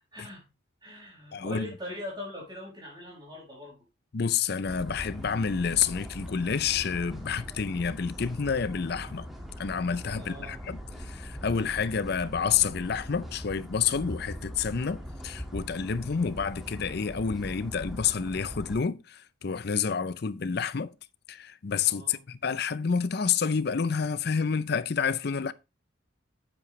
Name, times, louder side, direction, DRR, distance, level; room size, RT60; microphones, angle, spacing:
voice 1, 0.1-0.5 0.8-3.8 10.2-10.6 21.8-22.2, left 1 dB, 20° right, 5.3 m, -41 dB
voice 2, 1.3-1.7 4.1-9.3 9.6-20.9 21.3-25.5, left 6 dB, 50° left, 0.5 m, -29 dB
sound 1, 4.6-18.8, equal, ahead, 1.8 m, -41 dB
8.5 x 8.5 x 3.2 m
head